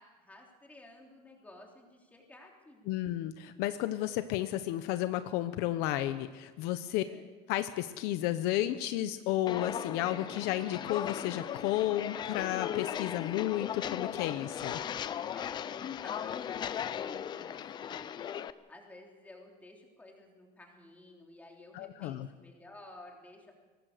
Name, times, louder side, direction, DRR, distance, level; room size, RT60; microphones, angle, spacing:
voice 1, 0.0-2.9 6.9-7.2 15.1-16.3 16.6-18.3 18.7-23.5, left 1 dB, 10° left, 0 dB, 3.2 m, -54 dB
voice 2, 2.9-7.0 7.5-14.8 21.7-22.3, left 14 dB, 65° left, 10 dB, 1.0 m, -32 dB
Walk footsteps, 9.5-18.5, left 9 dB, 25° left, 0.5 m, -37 dB
23.5 x 19.0 x 6.7 m, 1.3 s
cardioid pair, 180°, 18 cm